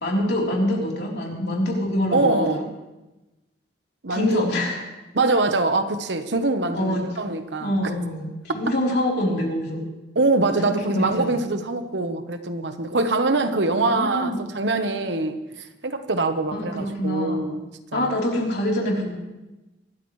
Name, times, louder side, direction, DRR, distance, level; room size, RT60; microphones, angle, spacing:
voice 1, 0.0-2.6 4.1-4.8 6.7-7.2 7.6-8.3 8.5-9.8 10.7-11.4 13.8-14.4 16.5-17.5 17.9-19.1, left 1 dB, 65° left, -2 dB, 3.8 m, -25 dB
voice 2, 2.1-2.7 4.0-4.5 5.1-7.8 10.1-18.2, right 2 dB, 75° right, 8 dB, 1.1 m, -24 dB
24.0 x 13.0 x 3.3 m, 1.0 s
head